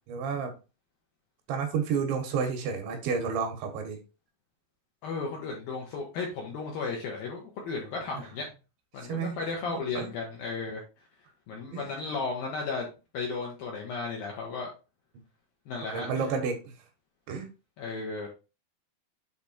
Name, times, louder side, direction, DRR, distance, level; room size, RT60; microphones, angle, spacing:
voice 1, 0.1-0.5 1.5-4.0 9.0-9.4 9.7-10.1 11.7-11.8 15.8-16.7 17.3-17.5, right 6 dB, 75° right, 5 dB, 3.3 m, -31 dB
voice 2, 5.0-8.5 8.9-10.8 11.5-12.9 13.1-14.7 15.7-16.3 17.8-18.3, left 4 dB, 70° left, -1 dB, 2.3 m, -34 dB
8.1 x 3.4 x 4.3 m, 0.30 s
omnidirectional pair, 5.6 m